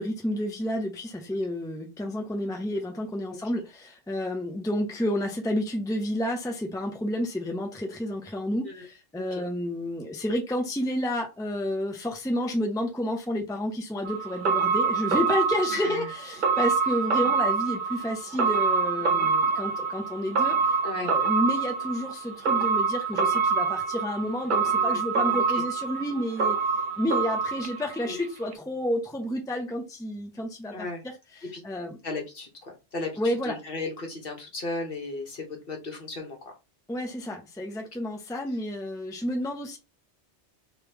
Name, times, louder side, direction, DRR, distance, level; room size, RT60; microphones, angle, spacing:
voice 1, 0.0-26.6 27.0-30.9 31.6-32.0 33.2-33.6 36.9-39.8, left 1 dB, 5° left, 0.6 m, -30 dB
sound 1, 14.0-28.2 28.5-28.6, right 5 dB, 55° right, 0.7 m, -26 dB
voice 2, 15.7-16.1 20.8-21.1 24.7-25.0 25.5-25.6 28.0-28.2 30.7-31.0 31.4-31.6 32.0-36.6 38.5-38.6, left 2 dB, 55° left, 1.4 m, -36 dB
3.3 x 3.0 x 3.4 m
omnidirectional pair, 1.2 m